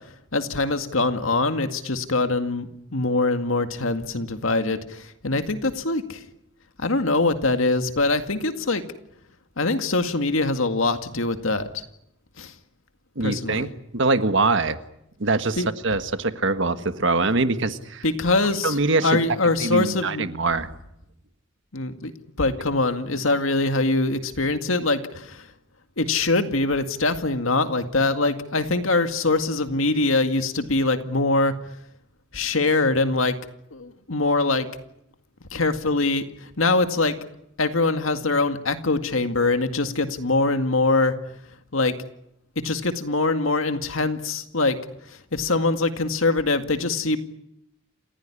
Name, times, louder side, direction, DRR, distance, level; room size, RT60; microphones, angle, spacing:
voice 1, 0.3-6.2 6.8-8.8 9.6-11.8 12.4-12.5 13.2-13.7 15.6-15.7 18.0-20.3 21.7-22.1 22.4-25.5 26.0-31.5 32.3-33.4 33.7-34.7 35.5-36.2 36.6-37.2 37.6-41.2 41.7-41.9 42.6-44.8 45.3-47.2, left 3 dB, 85° left, 8 dB, 2.1 m, -23 dB
voice 2, 13.1-13.7 13.9-14.8 15.2-18.0 18.6-19.2 19.6-20.7, right 3 dB, 65° right, 10 dB, 1.6 m, -23 dB
28.5 x 16.0 x 10.0 m, 0.81 s
head